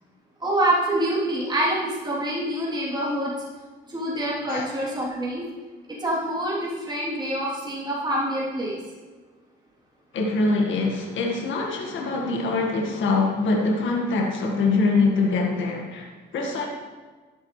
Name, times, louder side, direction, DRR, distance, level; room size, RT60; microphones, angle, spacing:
voice 1, 0.4-3.3 3.9-5.4 5.9-8.8, right 1 dB, 20° right, -7 dB, 3.2 m, -26 dB
voice 2, 10.1-16.7, left 3 dB, 75° left, 0 dB, 1.8 m, -24 dB
12.0 x 9.1 x 3.3 m, 1.3 s
cardioid pair, 90°, 20 cm